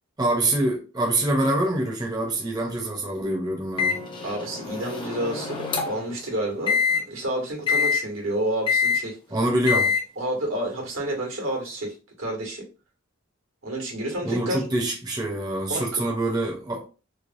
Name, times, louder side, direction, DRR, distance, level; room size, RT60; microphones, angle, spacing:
voice 1, 0.2-4.0 9.3-9.9 14.2-16.8, right 1 dB, 20° right, 0.6 m, -25 dB
Microwave oven, 3.8-6.1 6.7-7.0 7.7-8.0 8.7-9.0 9.7-10.0, left 6 dB, 25° left, 0.6 m, -24 dB
voice 2, 4.2-9.2 10.2-12.7 13.6-14.6 15.7-16.0, right 1 dB, 85° right, 1.3 m, -30 dB
3.2 x 2.2 x 2.6 m
head